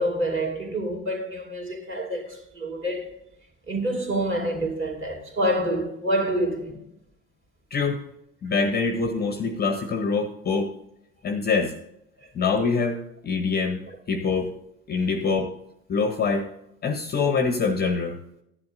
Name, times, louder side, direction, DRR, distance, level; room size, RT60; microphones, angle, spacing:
voice 1, 0.0-3.1 3.7-6.8 12.2-12.3, right 1 dB, 25° right, 2.8 m, -27 dB
voice 2, 7.7-8.1 8.4-10.7 11.2-11.7 12.3-14.5 14.9-15.5 15.9-16.5 16.8-18.2, left 4 dB, 20° left, 0.8 m, -25 dB
15.0 x 10.5 x 2.6 m
figure-of-eight pair, 70°, 44 cm